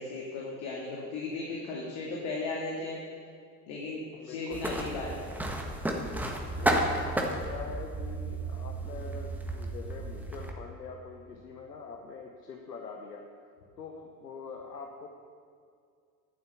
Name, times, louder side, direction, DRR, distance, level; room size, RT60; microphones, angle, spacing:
voice 1, 0.0-3.0 3.7-5.3, left 3 dB, 55° left, -3 dB, 2.2 m, -36 dB
voice 2, 4.1-4.8 6.6-13.3 13.8-15.1, left 5 dB, 75° left, 2 dB, 1.1 m, -43 dB
sound 1, 4.5-10.5, right 1 dB, 5° right, 1.5 m, -32 dB
9.8 x 8.1 x 8.0 m, 2.3 s
figure-of-eight pair, 65°, 49 cm